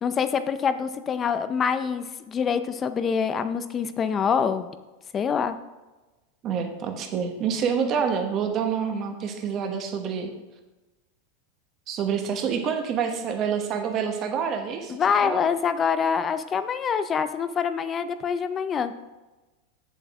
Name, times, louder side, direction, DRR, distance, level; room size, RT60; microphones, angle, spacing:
voice 1, 0.0-4.7 5.1-5.6 14.9-18.9, left 6 dB, 20° left, 11 dB, 0.5 m, -25 dB
voice 2, 6.4-10.3 11.9-15.0 15.2-15.5, right 7 dB, 35° right, 5 dB, 1.1 m, -27 dB
8.1 x 7.2 x 3.6 m, 1.1 s
supercardioid pair, 150°, 0 cm